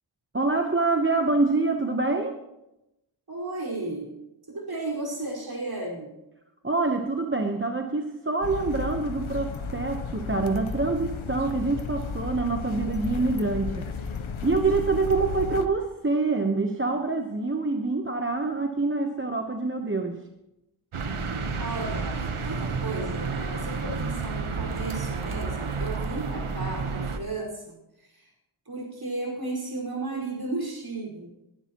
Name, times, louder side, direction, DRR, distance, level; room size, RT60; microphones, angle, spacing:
voice 1, 0.3-2.4 6.6-13.9 14.4-20.2, right 3 dB, 25° right, 4 dB, 1.0 m, -26 dB
voice 2, 3.3-4.1 4.5-6.1 21.6-28.3 28.6-31.3, right 2 dB, 50° right, -3 dB, 5.1 m, -34 dB
sound 1, 8.4-15.7, left 5 dB, 80° left, 1.0 m, -34 dB
sound 2, 20.9-27.2, right 4 dB, 85° right, 1.2 m, -30 dB
21.0 x 11.5 x 3.0 m, 0.90 s
wide cardioid pair, 65°, 48 cm